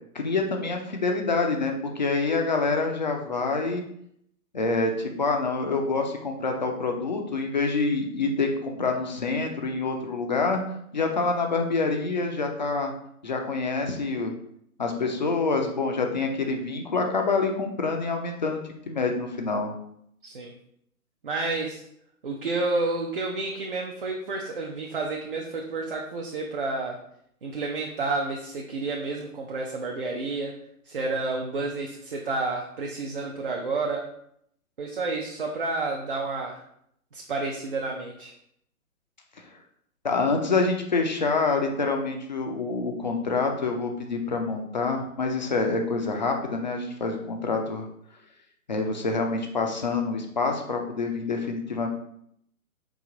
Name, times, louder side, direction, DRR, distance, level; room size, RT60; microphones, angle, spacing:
voice 1, 0.1-3.8 4.5-10.6 10.9-12.9 13.2-14.3 14.8-18.6 18.9-19.7 40.0-47.9 48.7-51.9, left 3 dB, 30° left, 3 dB, 0.4 m, -26 dB
voice 2, 20.2-20.5 21.2-21.8 22.2-27.0 27.4-30.6 30.9-34.1 34.8-36.6 37.1-38.3, right 3 dB, 40° right, 0 dB, 0.5 m, -30 dB
4.8 x 2.5 x 3.7 m, 0.72 s
figure-of-eight pair, 135°, 45 cm